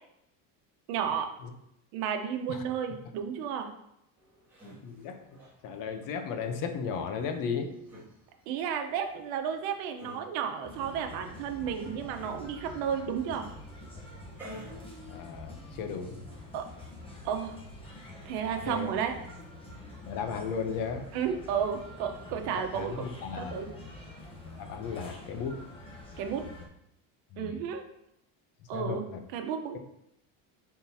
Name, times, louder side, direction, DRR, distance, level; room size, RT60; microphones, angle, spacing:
voice 1, 0.9-1.3 1.9-3.7 8.5-13.5 16.5-16.6 17.2-17.6 18.2-19.1 21.1-23.1 23.4-23.7 26.2-26.4 27.4-27.8 28.7-29.0 29.3-29.8, right 7 dB, 85° right, 5 dB, 1.0 m, -32 dB
sound 1, 4.2-15.6, equal, 5° right, 2.1 m, -53 dB
voice 2, 4.8-7.7 15.1-16.2 18.7-18.9 20.1-21.0 22.7-23.6 24.6-25.6 27.3-27.6 28.7-29.2, left 6 dB, 50° left, 7 dB, 0.8 m, -35 dB
sound 2, 10.6-26.7, left 1 dB, 15° left, 0.9 m, -46 dB
10.5 x 3.9 x 2.7 m, 0.80 s
cardioid pair, 180°, 42 cm